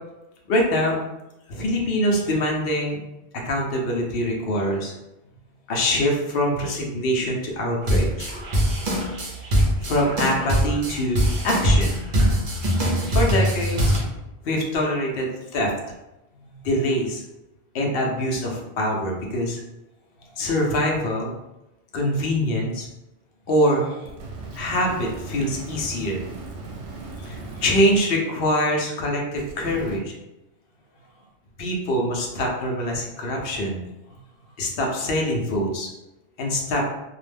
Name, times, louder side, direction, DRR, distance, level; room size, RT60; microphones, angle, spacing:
voice 1, 0.5-1.0 1.5-3.0 3.4-4.9 5.7-8.3 9.8-12.0 13.1-13.9 14.4-15.7 16.4-17.2 17.7-19.6 20.4-21.3 21.9-22.9 23.5-24.1 24.5-26.2 27.2-30.1 31.6-33.8 34.6-35.9 36.4-36.8, equal, 65° left, -1 dB, 0.8 m, -24 dB
sound 1, 7.8-14.0, equal, 50° right, 0.7 m, -22 dB
sound 2, 24.0-28.0 29.4-30.0, right 3 dB, 80° right, 0.8 m, -37 dB
2.4 x 2.1 x 3.2 m, 0.96 s
omnidirectional pair, 1.1 m